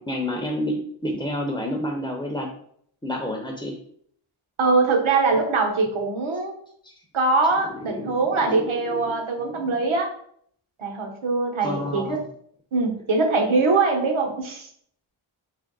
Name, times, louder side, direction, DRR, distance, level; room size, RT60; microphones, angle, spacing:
voice 1, 0.0-2.5 3.0-3.7 6.8-6.9 7.8-9.1 9.5-9.7 11.6-12.2, equal, 10° left, 1 dB, 0.4 m, -30 dB
voice 2, 4.6-6.5 7.1-10.1 10.8-12.2 12.7-14.7, right 3 dB, 70° right, 2 dB, 1.0 m, -22 dB
3.4 x 2.9 x 3.8 m, 0.64 s
wide cardioid pair, 115°, 50 cm